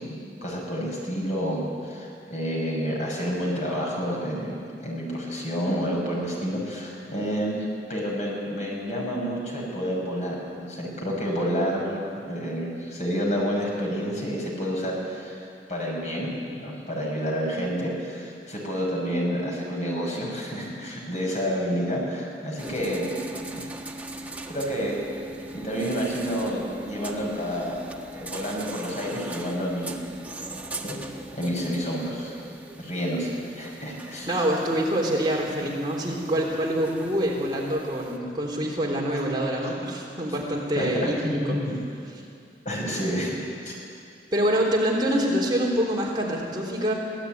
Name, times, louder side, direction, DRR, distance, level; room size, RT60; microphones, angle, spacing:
voice 1, 0.0-12.0 12.3-15.4 15.7-23.2 23.5-23.7 24.5-25.0 25.5-27.7 28.1-30.0 30.8-30.9 31.3-32.3 32.8-34.4 39.6-39.7 40.7-41.7 42.6-43.4 43.6-43.7, equal, 40° left, -2 dB, 6.2 m, -29 dB
sound 1, 22.6-38.2, right 2 dB, 10° right, 1.4 m, -40 dB
voice 2, 34.3-41.6 42.1-42.2 44.3-46.9, equal, 25° right, -2 dB, 3.5 m, -25 dB
24.5 x 17.0 x 9.3 m, 2.4 s
head